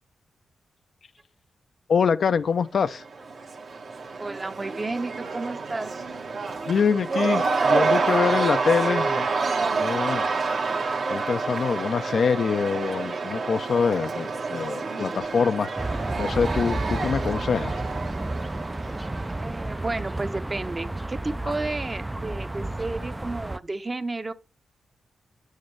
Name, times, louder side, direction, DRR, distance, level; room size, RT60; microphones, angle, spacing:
voice 1, 1.9-3.0 6.7-9.3 9.6-10.3 11.1-17.8, left 6 dB, 65° left, 0.5 m, -25 dB
Cheering / Crowd, 2.9-19.7, right 4 dB, 65° right, 1.4 m, -28 dB
voice 2, 4.2-5.9 16.8-17.0 19.4-24.3, right 3 dB, 35° right, 0.8 m, -32 dB
sound 1, 15.8-23.6, right 2 dB, 20° right, 0.4 m, -31 dB
8.4 x 6.5 x 3.2 m
supercardioid pair, 45°, 0 cm